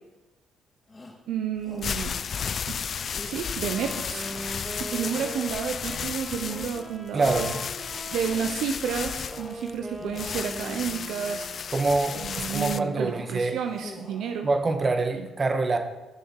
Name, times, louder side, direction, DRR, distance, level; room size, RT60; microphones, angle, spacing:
Shout, 0.9-1.2 1.6-2.0 2.3-2.7 3.1-3.8 4.3-4.6 5.0-5.4 5.8-6.9 7.3-7.7 8.1-8.6 9.0-9.6 9.9-10.6 11.1-11.5 11.9-12.4 12.8-13.3 13.6-14.3, left 2 dB, 30° left, 3.4 m, -46 dB
voice 1, 1.3-2.2 2.7-2.8 3.2-7.5 8.1-11.5 12.1-14.5, right 7 dB, 75° right, 5 dB, 0.8 m, -31 dB
sound 1, 1.6-12.8, left 7 dB, 55° left, 0.4 m, -33 dB
Wind instrument woodwind instrument, 3.5-11.9, right 1 dB, 20° right, 2.9 m, -41 dB
voice 2, 7.1-7.6 11.7-13.6 14.4-15.8, right 3 dB, 35° right, 5 dB, 1.7 m, -25 dB
16.5 x 6.5 x 4.8 m, 1.1 s
supercardioid pair, 60°, 0 cm